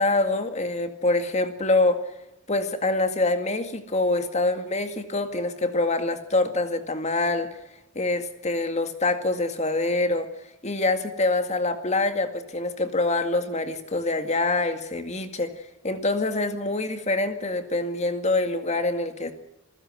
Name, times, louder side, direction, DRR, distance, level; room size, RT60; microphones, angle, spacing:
voice 1, 0.0-2.0 2.5-7.5 8.0-10.3 10.6-19.3, left 2 dB, 35° left, 7 dB, 2.1 m, -25 dB
28.0 x 15.5 x 7.9 m, 0.92 s
head